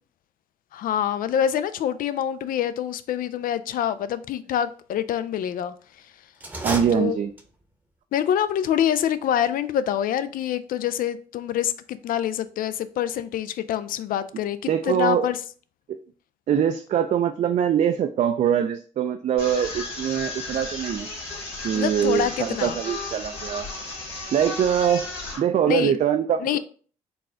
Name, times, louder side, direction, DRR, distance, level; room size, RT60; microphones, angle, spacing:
voice 1, 0.7-5.7 6.9-7.2 8.1-15.4 21.7-22.8 25.7-25.9 26.4-26.6, left 10 dB, 60° left, 0.4 m, -26 dB
sound 1, 6.4-7.7, right 1 dB, 10° right, 0.8 m, -32 dB
voice 2, 6.6-7.3 14.7-15.3 15.9-16.0 16.5-21.1 21.6-23.7 24.3-25.0 25.4-26.6, right 9 dB, 45° right, 0.4 m, -23 dB
sound 2, 19.4-25.4, left 3 dB, 90° left, 1.6 m, -34 dB
4.0 x 2.2 x 3.7 m
supercardioid pair, 60°, 16 cm